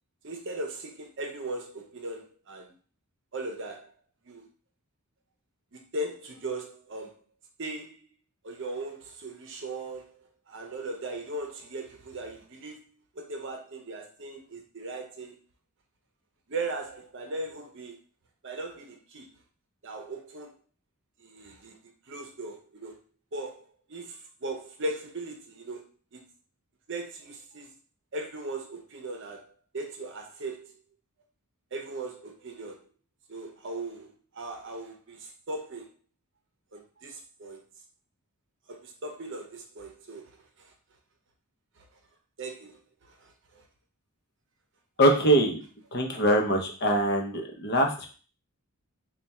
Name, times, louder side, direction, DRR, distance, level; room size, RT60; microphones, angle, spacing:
voice 1, 0.2-2.7 3.3-3.9 4.2-4.5 5.7-7.2 7.6-8.1 8.4-15.4 16.5-18.0 18.4-19.3 19.8-20.5 21.2-23.0 23.3-25.8 26.1-26.3 26.9-27.7 28.1-30.7 31.7-32.9 33.3-35.9 36.7-37.7 38.7-40.7 41.8-41.9 42.4-43.6, right 2 dB, 55° right, 3 dB, 0.7 m, -38 dB
voice 2, 45.0-45.6 45.9-48.1, right 1 dB, 45° left, 2 dB, 0.7 m, -23 dB
3.3 x 2.3 x 4.2 m, 0.39 s
head